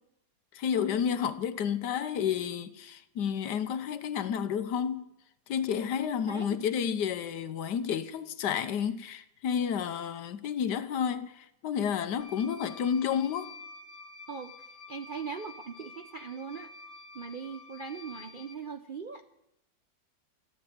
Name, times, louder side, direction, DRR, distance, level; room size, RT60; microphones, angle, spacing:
voice 1, 0.5-5.1 5.5-13.5, left 8 dB, 75° left, 1.4 m, -31 dB
voice 2, 6.0-6.7 14.3-14.5 14.9-16.7 17.1-19.2, right 5 dB, 55° right, 0.5 m, -40 dB
sound 1, 12.2-18.6, left 4 dB, 60° left, 1.7 m, -49 dB
14.0 x 11.5 x 8.6 m
omnidirectional pair, 1.8 m